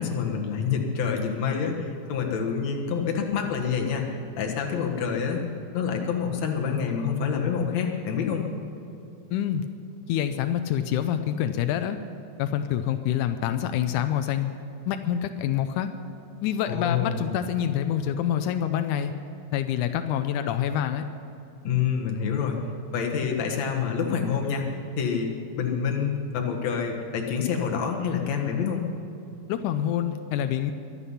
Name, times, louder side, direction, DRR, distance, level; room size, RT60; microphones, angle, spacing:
voice 1, 0.0-5.4 5.7-8.4 16.7-17.4 21.6-22.6 22.9-28.9, left 6 dB, 55° left, 1 dB, 2.4 m, -27 dB
voice 2, 9.3-9.6 10.1-12.0 12.4-14.5 14.9-15.9 16.4-19.1 19.5-21.0 29.5-30.7, left 10 dB, 85° left, 8 dB, 1.8 m, -26 dB
23.5 x 9.9 x 5.7 m, 2.8 s
omnidirectional pair, 4.3 m